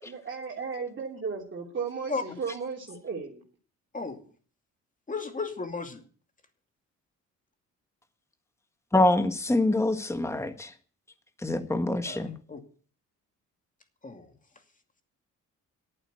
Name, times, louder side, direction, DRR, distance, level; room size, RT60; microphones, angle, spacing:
voice 1, 0.1-3.4, right 5 dB, 40° right, -2 dB, 3.2 m, -35 dB
voice 2, 5.1-6.0 12.1-12.2 12.5-12.6 14.0-14.3, left 4 dB, 25° left, 7 dB, 2.5 m, -34 dB
voice 3, 8.9-10.7 11.4-12.3, left 2 dB, 10° left, 8 dB, 1.5 m, -25 dB
11.5 x 8.8 x 8.2 m, 0.42 s
cardioid pair, 90°, 30 cm